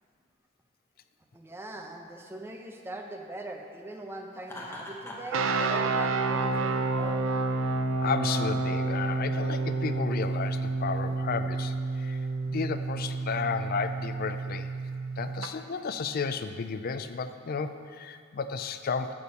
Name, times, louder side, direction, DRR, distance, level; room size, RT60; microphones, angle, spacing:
voice 1, 1.3-7.3, right 2 dB, 10° right, 2 dB, 0.7 m, -41 dB
Laughter, 4.4-5.4, left 1 dB, 10° left, 1.0 m, -41 dB
sound 1, 5.3-15.5, right 3 dB, 65° right, 0.5 m, -29 dB
voice 2, 8.0-12.2 12.5-14.7 15.2-19.1, left 5 dB, 45° left, 10 dB, 0.4 m, -33 dB
13.5 x 4.6 x 5.3 m, 2.2 s
head